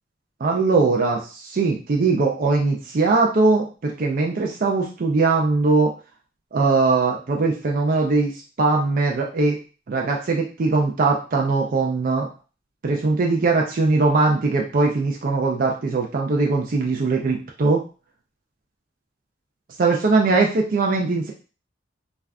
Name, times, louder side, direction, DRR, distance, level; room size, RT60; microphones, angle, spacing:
voice 1, 0.4-5.9 6.5-8.3 8.6-9.6 9.9-12.3 12.8-17.8 19.8-21.3, right 3 dB, 50° right, 0 dB, 0.4 m, -20 dB
2.5 x 2.3 x 3.4 m, 0.35 s
head